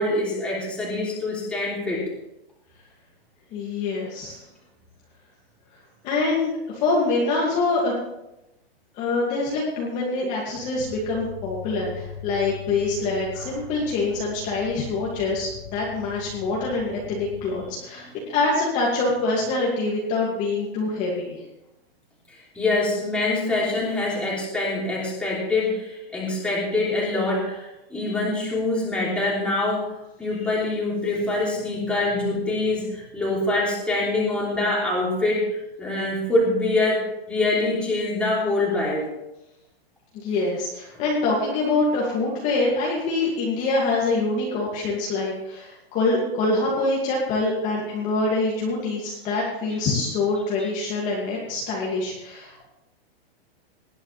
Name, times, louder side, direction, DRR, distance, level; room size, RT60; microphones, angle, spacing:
voice 1, 0.0-2.1 13.4-13.5 22.3-29.9 30.2-39.1, left 2 dB, 5° left, -5 dB, 3.2 m, -25 dB
voice 2, 3.5-4.4 6.0-7.9 9.0-21.4 40.1-52.6, left 3 dB, 25° left, -4 dB, 2.4 m, -25 dB
sound 1, 10.8-17.7, left 6 dB, 85° left, 5.4 m, -41 dB
19.5 x 10.5 x 3.4 m, 0.89 s
supercardioid pair, 170°, 30 cm